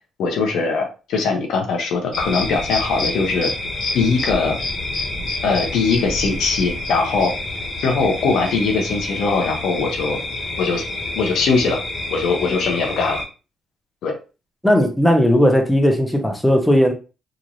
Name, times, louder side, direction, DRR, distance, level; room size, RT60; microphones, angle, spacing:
voice 1, 0.2-3.5 3.9-4.6 5.4-7.3 7.8-10.2 10.6-10.8 11.2-11.8 12.1-13.2 14.0-14.1, left 4 dB, 80° left, 3 dB, 0.8 m, -21 dB
sound 1, 2.1-13.2, left 2 dB, 45° left, 1.4 m, -28 dB
voice 2, 14.6-16.9, equal, 5° left, 3 dB, 0.7 m, -16 dB
3.0 x 2.5 x 2.5 m, 0.32 s
cardioid pair, 90°, 0 cm